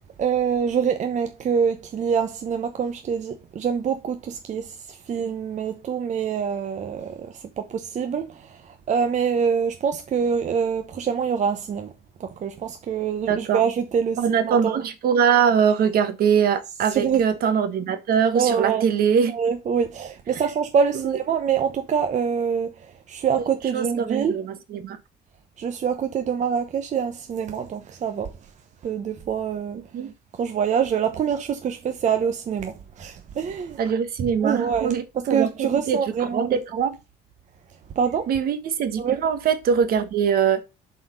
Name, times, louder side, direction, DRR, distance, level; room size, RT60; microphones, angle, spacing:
voice 1, 0.2-11.9 12.2-14.8 16.9-17.2 18.3-18.9 19.3-24.4 25.6-28.3 28.8-29.8 30.3-33.8 34.4-36.8 38.0-38.3 39.0-39.2, right 7 dB, 45° right, 0.9 m, -25 dB
voice 2, 13.3-13.6 14.2-19.3 20.9-21.2 23.7-25.0 29.9-30.1 33.8-36.9 38.3-40.6, right 7 dB, 60° right, 1.3 m, -22 dB
7.6 x 4.3 x 5.5 m
cardioid pair, 110°, 17 cm